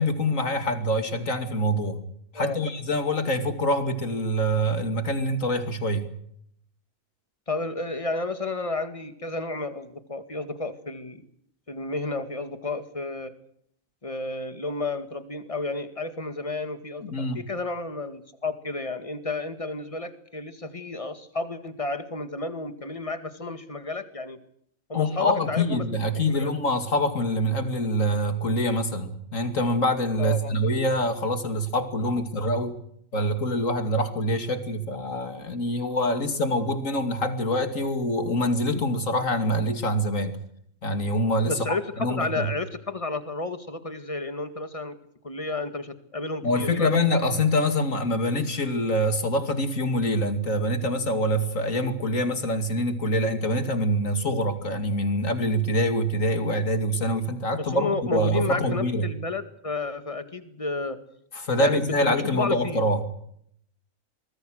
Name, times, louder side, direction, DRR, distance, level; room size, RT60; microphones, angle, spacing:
voice 1, 0.0-2.0 2.3-6.1 17.0-17.4 24.9-32.8 33.1-40.3 40.8-42.5 46.4-59.1 61.3-63.0, equal, 70° left, 8 dB, 2.9 m, -25 dB
voice 2, 7.5-11.2 11.7-13.3 14.0-24.4 24.9-25.9 26.1-26.6 30.2-30.6 41.4-45.0 45.2-46.9 57.6-61.0 61.6-62.8, left 3 dB, 25° left, 10 dB, 2.0 m, -31 dB
25.0 x 22.5 x 6.5 m, 0.69 s
omnidirectional pair, 1.4 m